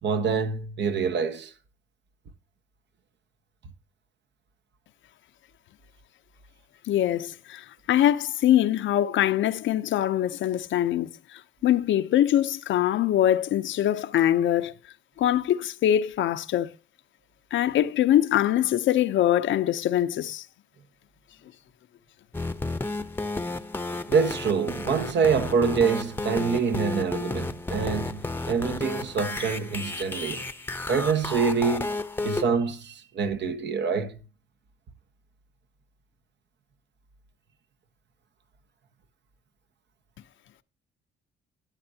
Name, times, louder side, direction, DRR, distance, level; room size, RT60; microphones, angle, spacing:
voice 1, 0.0-1.5 24.1-30.4 30.9-34.2, right 5 dB, 60° right, 1.4 m, -26 dB
voice 2, 6.9-14.7 15.2-16.7 17.5-20.4, left 11 dB, 75° left, 0.7 m, -23 dB
sound 1, 22.3-32.4, left 2 dB, 10° left, 0.8 m, -32 dB
13.0 x 10.0 x 2.8 m
cardioid pair, 90°, 20 cm